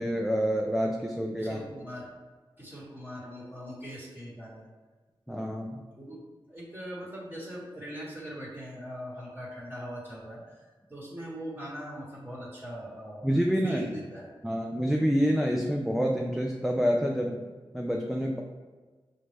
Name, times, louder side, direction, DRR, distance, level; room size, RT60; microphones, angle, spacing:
voice 1, 0.0-1.6 5.3-5.8 13.2-13.8 14.4-17.5 17.7-18.4, equal, ahead, 0 dB, 0.4 m, -27 dB
voice 2, 1.4-2.1 2.6-4.7 5.9-6.2 6.5-13.3 13.6-14.3, equal, 20° right, -6 dB, 1.1 m, -41 dB
5.1 x 2.1 x 3.3 m, 1.4 s
cardioid pair, 50°, 10 cm